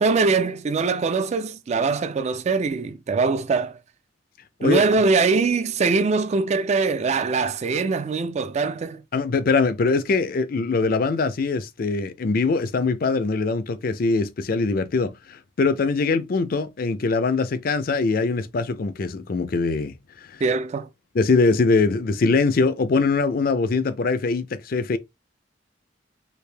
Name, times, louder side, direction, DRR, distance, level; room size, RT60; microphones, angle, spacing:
voice 1, 0.0-3.8 4.6-9.0 20.4-20.9, right 4 dB, 35° right, 0.3 m, -22 dB
voice 2, 9.1-19.9 21.1-25.0, left 4 dB, 50° left, 0.4 m, -22 dB
3.3 x 2.6 x 3.3 m
head